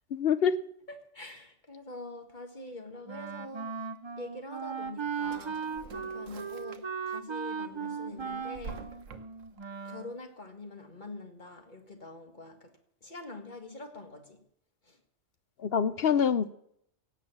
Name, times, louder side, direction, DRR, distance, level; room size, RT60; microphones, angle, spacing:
voice 1, 0.1-0.5 15.6-16.5, left 7 dB, 55° left, 14 dB, 0.8 m, -25 dB
voice 2, 0.9-3.8 4.2-5.6 5.9-8.9 9.8-12.7 13.0-14.4 14.8-15.0, left 2 dB, 35° left, 5 dB, 1.8 m, -44 dB
Wind instrument woodwind instrument, 3.1-10.2, right 6 dB, 35° right, 0.5 m, -37 dB
Drawer open or close, 4.6-7.2 7.6-9.6, right 5 dB, 80° right, 1.3 m, -48 dB
17.0 x 8.1 x 7.2 m, 0.70 s
omnidirectional pair, 1.3 m